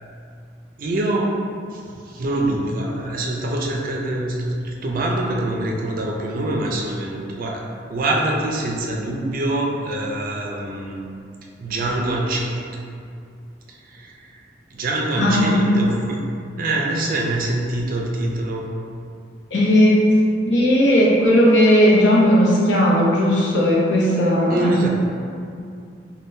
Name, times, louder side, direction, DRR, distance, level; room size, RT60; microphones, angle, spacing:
voice 1, 0.8-1.5 1.7-11.1 11.6-12.6 13.7-14.4 14.7-16.2 16.6-18.7 24.5-24.9, right 1 dB, 50° right, 0 dB, 0.4 m, -25 dB
voice 2, 15.2-15.7 19.5-20.0 20.5-24.8, equal, 80° left, -6 dB, 0.7 m, -16 dB
3.6 x 2.2 x 2.6 m, 2.4 s
head